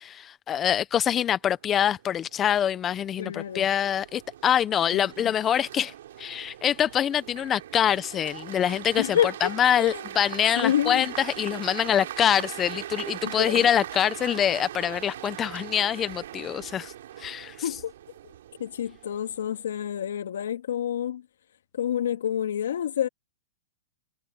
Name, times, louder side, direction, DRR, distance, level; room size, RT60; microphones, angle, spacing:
voice 1, 0.0-17.6, left 9 dB, 25° left, 0.9 m, -25 dB
sound 1, 1.6-19.9, right 12 dB, 75° right, 6.3 m, -41 dB
voice 2, 3.2-3.7 4.9-5.3 9.0-10.1 10.6-11.1 13.2-13.7 17.6-17.9 18.2-18.3 18.6-21.2 21.7-23.1, left 10 dB, 85° left, 2.4 m, -28 dB
hypercardioid pair, 130°, 0 cm